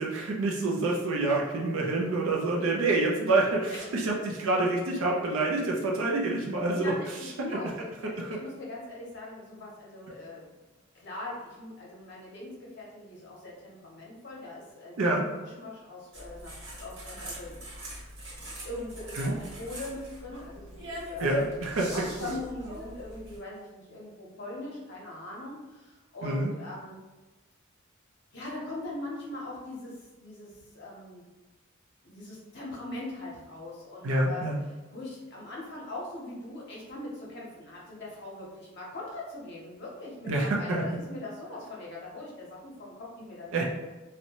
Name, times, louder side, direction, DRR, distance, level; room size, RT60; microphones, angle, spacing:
voice 1, 0.0-6.9 7.5-7.6 8.2-8.3 15.0-15.2 19.2-19.3 21.2-21.9 22.2-22.3 26.2-26.5 34.0-34.6 40.3-40.8 43.5-43.6, right 2 dB, 80° right, -2 dB, 0.5 m, -27 dB
voice 2, 6.7-10.5 10.9-16.5 16.8-17.6 18.6-21.3 21.9-27.0 28.3-31.2 32.0-34.5 34.9-43.6, left 2 dB, 55° left, -4 dB, 0.7 m, -41 dB
sound 1, 16.1-23.4, right 1 dB, 60° right, 1.0 m, -43 dB
2.6 x 2.1 x 2.8 m, 1.2 s
head